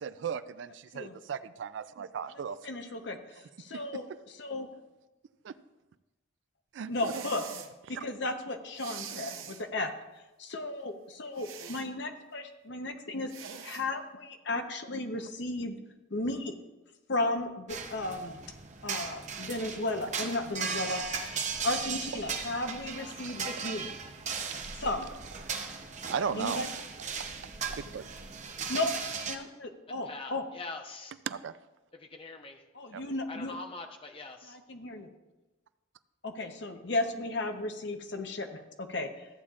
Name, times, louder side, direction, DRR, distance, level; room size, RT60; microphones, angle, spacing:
voice 1, 0.0-2.6 3.7-3.8 5.4-5.5 6.7-7.2 7.9-8.0 15.1-15.2 26.1-26.6 27.7-28.1 31.3-31.5 32.9-33.0, right 7 dB, 65° right, 14 dB, 0.3 m, -36 dB
voice 2, 2.6-4.7 6.9-7.4 8.0-9.9 10.4-13.3 13.6-15.8 16.1-16.5 17.1-18.4 18.8-21.0 21.6-23.9 24.7-25.1 26.3-26.7 28.7-30.4 32.7-33.5 34.4-35.1 36.2-39.3, left 2 dB, 60° left, 6 dB, 0.9 m, -34 dB
sound 1, 6.9-7.7 8.8-9.6 11.4-11.9 13.3-13.8, right 7 dB, 85° right, 0.8 m, -43 dB
sound 2, 17.7-29.4, right 5 dB, 35° right, 0.7 m, -37 dB
voice 3, 30.0-31.1 32.0-32.6 33.3-34.6, left 3 dB, 30° left, 4 dB, 0.8 m, -43 dB
14.0 x 8.5 x 2.4 m, 1.1 s
head